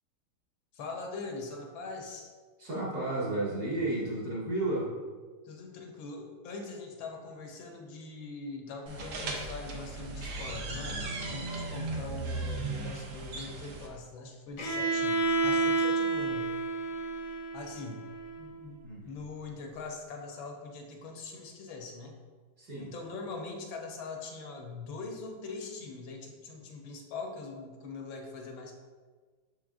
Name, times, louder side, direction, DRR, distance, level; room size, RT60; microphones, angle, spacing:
voice 1, 0.7-2.3 5.4-16.6 17.5-18.0 18.4-22.2 22.8-28.8, left 3 dB, 75° left, 2 dB, 1.5 m, -42 dB
voice 2, 2.6-4.9 18.8-19.1 22.6-22.9, right 2 dB, 50° right, -7 dB, 1.8 m, -32 dB
sound 1, 8.9-13.9, right 2 dB, 65° right, 1.5 m, -37 dB
Bowed string instrument, 14.6-18.5, right 3 dB, 55° left, 1.0 m, -30 dB
6.4 x 6.1 x 2.5 m, 1.5 s
omnidirectional pair, 2.3 m